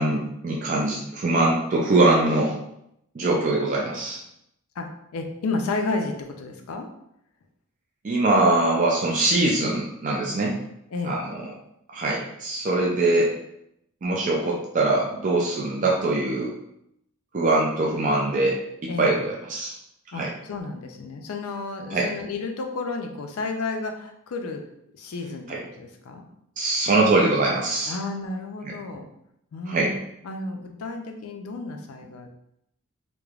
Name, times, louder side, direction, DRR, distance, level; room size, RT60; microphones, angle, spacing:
voice 1, 0.0-2.5 3.2-4.2 8.0-10.6 11.0-11.3 11.9-13.3 14.0-16.5 17.3-18.6 18.8-19.7 20.2-20.3 21.9-22.1 25.5-25.6 26.6-27.9 29.7-29.9, right 2 dB, 35° right, -3 dB, 0.3 m, -22 dB
voice 2, 4.8-6.9 10.9-11.2 18.9-19.2 20.1-24.6 24.9-26.2 27.9-29.1 29.5-30.0 30.2-32.3, left 3 dB, 75° left, 3 dB, 0.4 m, -32 dB
3.1 x 2.0 x 2.3 m, 0.77 s
head